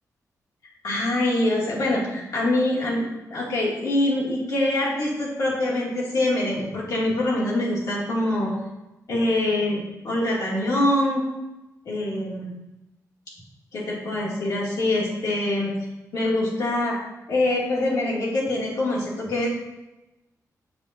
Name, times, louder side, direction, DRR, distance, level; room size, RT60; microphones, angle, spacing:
voice 1, 0.8-8.5 9.1-11.2 11.9-12.5 13.7-15.7 16.1-17.0 17.3-19.5, left 1 dB, 75° left, -6 dB, 2.2 m, -24 dB
7.2 x 2.6 x 5.7 m, 1.0 s
wide cardioid pair, 150°, 6 cm